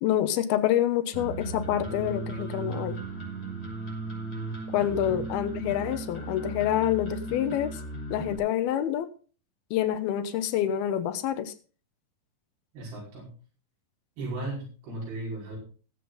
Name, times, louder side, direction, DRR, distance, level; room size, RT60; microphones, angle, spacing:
voice 1, 0.0-3.0 4.7-7.8 8.1-9.1 9.7-11.5, left 11 dB, 85° left, 12 dB, 2.9 m, -27 dB
sound 1, 1.1-8.4, right 2 dB, 15° left, 4.9 m, -36 dB
voice 2, 12.7-13.3 14.2-15.6, right 2 dB, 85° right, -4 dB, 7.2 m, -36 dB
19.5 x 7.8 x 3.9 m, 0.37 s
omnidirectional pair, 4.3 m